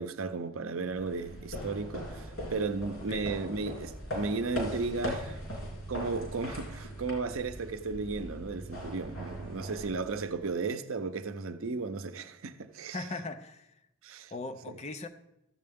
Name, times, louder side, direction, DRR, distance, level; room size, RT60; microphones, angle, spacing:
voice 1, 0.0-5.4 5.9-13.0 14.0-14.3 14.7-14.8, right 4 dB, 80° right, 0.6 m, -34 dB
sound 1, 0.9-10.5, equal, 85° left, 3.4 m, -40 dB
voice 2, 12.9-13.8 14.3-15.1, left 3 dB, 30° left, 0.6 m, -39 dB
13.5 x 7.7 x 3.6 m
head